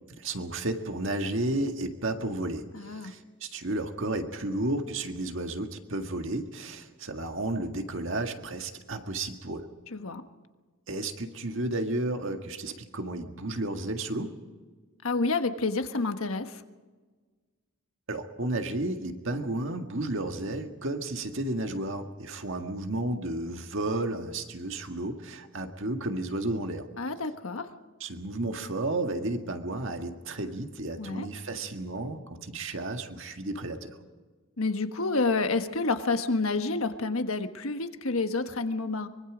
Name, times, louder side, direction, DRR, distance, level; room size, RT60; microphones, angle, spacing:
voice 1, 0.2-9.7 10.9-14.3 18.1-26.9 28.0-34.0, right 2 dB, 60° right, 5 dB, 1.9 m, -32 dB
voice 2, 2.7-3.1 9.9-10.2 15.0-16.6 27.0-27.7 31.0-31.3 34.6-39.1, left 3 dB, 70° left, 8 dB, 1.4 m, -29 dB
24.0 x 23.0 x 5.1 m, 1.4 s
head